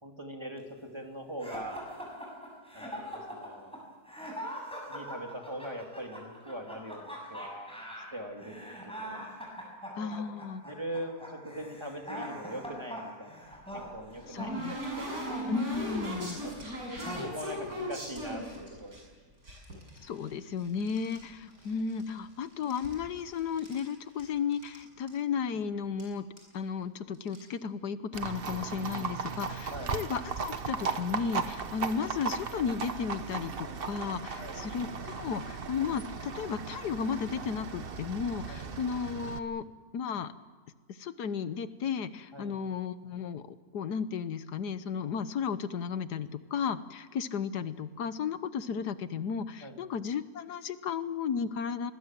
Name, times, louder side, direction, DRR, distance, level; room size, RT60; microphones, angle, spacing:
voice 1, 0.0-1.9 2.7-3.8 4.9-7.7 8.1-9.2 10.0-10.2 10.6-15.6 16.4-19.3 29.7-30.0 34.4-34.7 38.5-38.7 42.3-42.5 49.6-49.8, equal, 15° right, 2 dB, 3.0 m, -42 dB
sound 1, 1.4-16.6 17.0-17.7, equal, 5° left, 7.0 m, -42 dB
voice 2, 10.0-10.6 14.3-14.8 15.5-16.5 20.0-26.3 26.5-39.7 39.9-40.3 41.0-43.4 43.7-51.9, left 6 dB, 85° left, 13 dB, 1.6 m, -34 dB
sound 2, 13.5-19.0 19.4-21.2 21.5-22.3 22.5-23.9 24.2-24.3 24.5-24.8 25.1-25.2 26.0-26.1 26.4-26.6 27.1-27.4, equal, 65° right, 7.5 m, -39 dB
Livestock farm animals working animals, 28.1-39.4, right 5 dB, 40° right, 1.1 m, -37 dB
26.0 x 21.0 x 7.6 m, 1.5 s
omnidirectional pair, 1.7 m